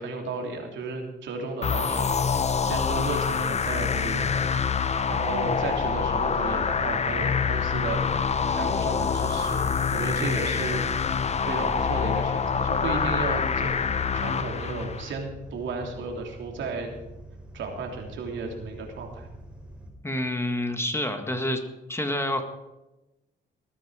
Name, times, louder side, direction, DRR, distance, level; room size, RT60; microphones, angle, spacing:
voice 1, 0.0-2.2 2.6-4.5 5.1-8.1 8.5-10.8 11.4-16.9 17.5-19.3, right 3 dB, 70° right, 2 dB, 3.4 m, -34 dB
sound 1, 1.6-15.1, left 6 dB, 35° left, 0.9 m, -26 dB
sound 2, 3.8-19.9, right 1 dB, 5° right, 4.3 m, -45 dB
voice 2, 20.0-21.6 21.9-22.4, left 1 dB, 10° left, 6 dB, 1.7 m, -28 dB
20.0 x 9.8 x 5.0 m, 1.0 s
cardioid pair, 90°, 20 cm